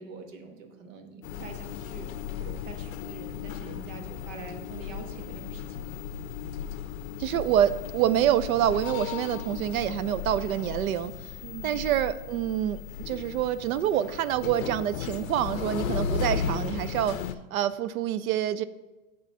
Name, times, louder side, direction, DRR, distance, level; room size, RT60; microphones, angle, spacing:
voice 1, 0.0-2.1 2.4-5.9 11.4-11.9, right 4 dB, 65° right, 4 dB, 1.2 m, -44 dB
sound 1, 1.2-17.4, left 7 dB, 75° left, 0.6 m, -35 dB
voice 2, 7.2-11.1 11.6-17.2 17.5-18.6, right 11 dB, 85° right, 14 dB, 0.5 m, -26 dB
8.2 x 3.1 x 5.5 m, 1.1 s
supercardioid pair, 165°, 41 cm